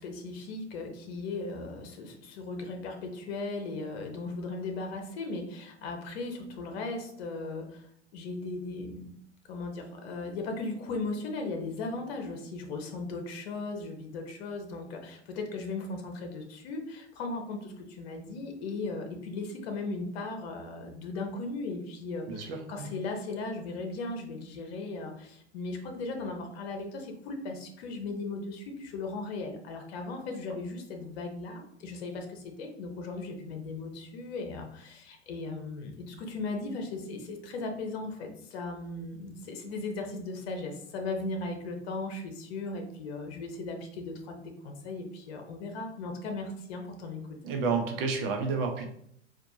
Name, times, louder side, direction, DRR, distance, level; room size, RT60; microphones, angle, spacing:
voice 1, 0.0-7.9 8.1-9.1 9.5-47.2, left 3 dB, 60° left, 4 dB, 0.9 m, -37 dB
voice 2, 22.3-22.9 47.4-48.9, right 4 dB, 50° right, 3 dB, 0.9 m, -30 dB
4.3 x 2.6 x 2.7 m, 0.69 s
hypercardioid pair, 100°, 36 cm